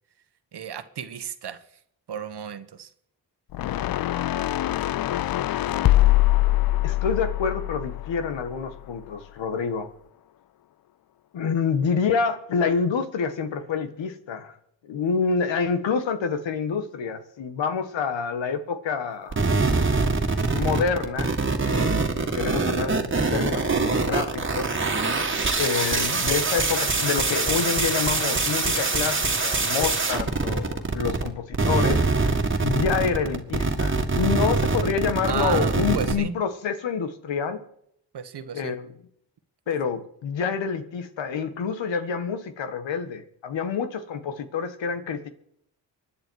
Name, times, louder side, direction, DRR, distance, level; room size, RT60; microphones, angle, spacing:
voice 1, 0.5-1.6 2.1-2.9 35.3-36.4 38.1-38.8, right 8 dB, 60° right, 11 dB, 1.3 m, -33 dB
sound 1, 3.5-8.8, left 15 dB, 55° left, 0.5 m, -23 dB
voice 2, 6.8-9.9 11.3-14.5 14.8-19.4 20.5-22.0 22.3-24.7 25.6-32.3 32.6-37.7 38.5-38.9 39.7-45.3, left 6 dB, 80° left, 10 dB, 1.7 m, -27 dB
sound 2, 19.3-31.3 31.5-36.1, right 3 dB, 25° right, 2.0 m, -24 dB
24.5 x 10.0 x 4.8 m, 0.72 s
cardioid pair, 85°, 44 cm